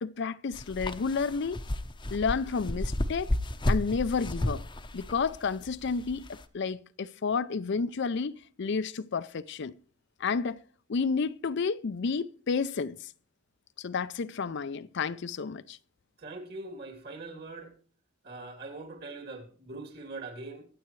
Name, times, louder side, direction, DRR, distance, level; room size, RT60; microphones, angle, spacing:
voice 1, 0.0-1.6 2.1-3.3 3.7-4.6 4.9-9.7 10.2-10.6 10.9-13.1 13.8-15.8, left 5 dB, 60° left, 0.5 m, -31 dB
sound 1, 0.5-6.4, left 1 dB, 25° left, 0.8 m, -32 dB
voice 2, 16.2-17.7 18.2-20.7, right 3 dB, 50° right, 3.0 m, -42 dB
23.0 x 7.8 x 3.2 m
head